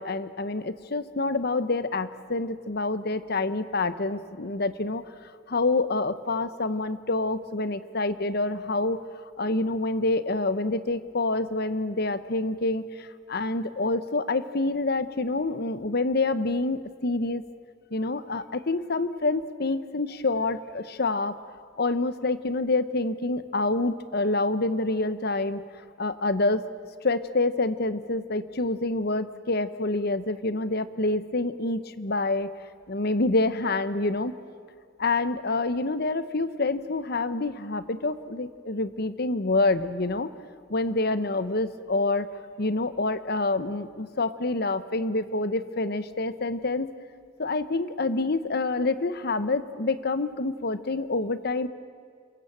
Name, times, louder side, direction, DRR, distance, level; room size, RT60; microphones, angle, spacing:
voice 1, 0.0-5.0 5.5-9.0 9.4-17.4 17.9-21.4 21.8-25.6 26.0-26.6 27.0-32.5 32.9-34.3 35.0-40.3 40.7-42.3 42.6-46.9 47.4-51.7, left 2 dB, 55° left, 13 dB, 1.0 m, -27 dB
27.5 x 23.5 x 7.4 m, 2.1 s
head